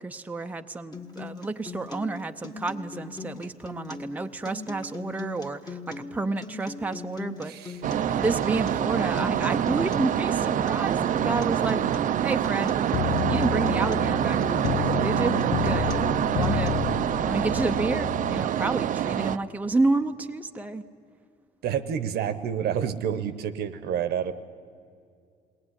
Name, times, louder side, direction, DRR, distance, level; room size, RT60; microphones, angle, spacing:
voice 1, 0.0-7.5 8.1-11.9 12.2-12.7 13.3-15.9 16.3-16.7 17.2-20.8, right 3 dB, 10° right, 6 dB, 0.7 m, -30 dB
Acoustic guitar, 0.9-16.9, left 3 dB, 25° left, 1.5 m, -39 dB
voice 2, 7.5-7.8 21.6-24.3, right 8 dB, 70° right, 13 dB, 1.0 m, -29 dB
sound 1, 7.8-19.4, right 10 dB, 50° right, 0.6 m, -26 dB
sound 2, 12.9-18.4, left 13 dB, 80° left, 0.5 m, -31 dB
21.5 x 17.5 x 9.8 m, 2.3 s
cardioid pair, 110°, 17 cm